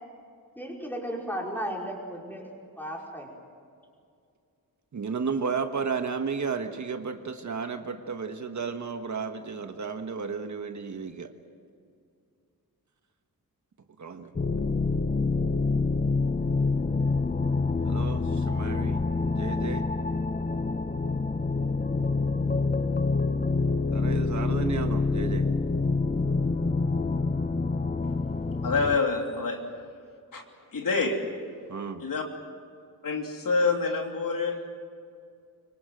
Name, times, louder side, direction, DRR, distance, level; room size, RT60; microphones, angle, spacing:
voice 1, 0.5-2.5 2.8-3.3, equal, 5° left, -1 dB, 5.1 m, -34 dB
voice 2, 4.9-11.3 14.0-14.3 17.8-19.0 19.3-19.8 23.9-25.5 31.7-32.1, right 5 dB, 50° right, 6 dB, 1.4 m, -33 dB
sound 1, 14.4-29.0, left 3 dB, 25° left, 0.7 m, -26 dB
voice 3, 28.6-29.6 30.3-30.4 30.7-31.2 32.0-32.2 33.0-34.7, left 4 dB, 60° left, 2 dB, 3.1 m, -26 dB
25.0 x 24.0 x 7.8 m, 2.3 s
wide cardioid pair, 145°, 37 cm